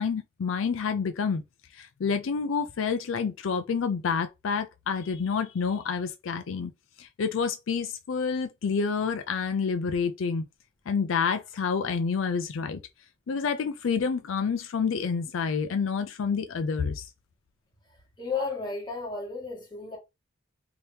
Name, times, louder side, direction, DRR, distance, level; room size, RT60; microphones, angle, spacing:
voice 1, 0.0-1.4 1.7-6.7 7.0-10.4 10.9-12.8 13.3-17.1, left 5 dB, 80° left, 0.4 m, -28 dB
voice 2, 18.2-20.0, left 4 dB, 20° left, 1.3 m, -33 dB
2.9 x 2.8 x 3.3 m
head